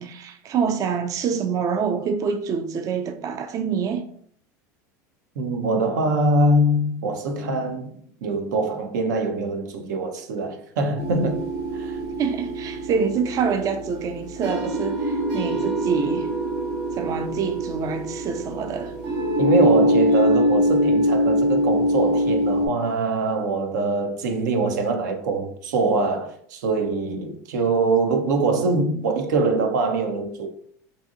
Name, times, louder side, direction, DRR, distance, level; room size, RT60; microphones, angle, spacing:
voice 1, 0.0-4.1 12.2-16.3 16.9-19.0, right 6 dB, 35° right, 0.3 m, -26 dB
voice 2, 5.4-11.4 11.7-12.0 19.4-30.5, right 2 dB, 85° right, 0.6 m, -23 dB
sound 1, 11.0-22.7, equal, 60° right, 1.4 m, -23 dB
2.7 x 2.6 x 2.5 m
hypercardioid pair, 95°, 10 cm